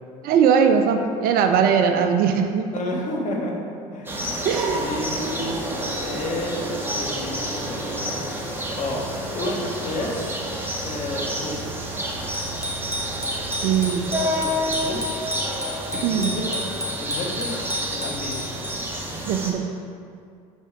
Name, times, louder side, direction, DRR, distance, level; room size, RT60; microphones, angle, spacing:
voice 1, 0.2-2.7 4.4-4.9 13.6-14.1 15.9-16.3 19.2-19.6, right 7 dB, 55° right, 6 dB, 0.6 m, -20 dB
voice 2, 2.7-3.6 3.9-8.2 8.5-10.4 10.8-11.8 14.2-15.0 15.9-16.5 17.0-18.5, left 1 dB, 40° left, -1 dB, 1.4 m, -31 dB
sound 1, 4.1-19.5, equal, 10° right, 1.2 m, -29 dB
sound 2, 6.1-14.2, right 7 dB, 85° right, 0.8 m, -41 dB
Bicycle bell, 12.3-19.0, equal, 15° left, 1.2 m, -32 dB
5.4 x 5.2 x 4.6 m, 2.3 s
hypercardioid pair, 70°, 19 cm